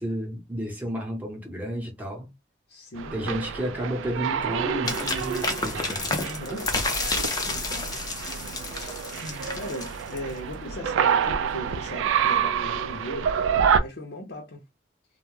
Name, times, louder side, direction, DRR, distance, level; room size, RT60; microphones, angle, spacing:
voice 1, 0.0-2.3 3.1-6.1, equal, 10° right, 0.8 m, -32 dB
voice 2, 2.7-3.4 4.8-5.0 6.2-6.7 7.4-8.0 8.7-14.6, equal, 65° left, 0.6 m, -38 dB
sound 1, 3.0-13.8, right 7 dB, 90° right, 0.3 m, -28 dB
sound 2, 4.9-10.4, left 3 dB, 20° left, 0.5 m, -30 dB
2.2 x 2.0 x 3.0 m
head